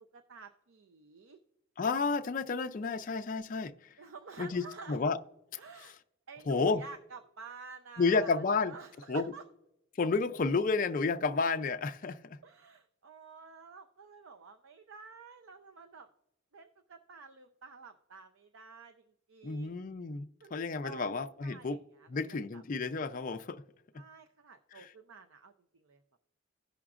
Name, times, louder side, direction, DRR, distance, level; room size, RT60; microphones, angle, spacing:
voice 1, 0.0-1.4 4.0-5.0 5.6-6.0 6.3-9.4 12.4-16.1 16.5-19.0 19.3-19.8 20.4-21.1 21.4-22.6 23.9-26.0, right 5 dB, 75° right, 0.6 m, -50 dB
voice 2, 1.8-3.9 4.4-5.2 5.5-5.6 6.5-6.8 8.0-8.8 9.1-9.3 10.0-12.4 19.4-21.8 22.1-23.6 24.7-24.9, left 4 dB, 40° left, 0.4 m, -31 dB
17.0 x 6.0 x 2.4 m
head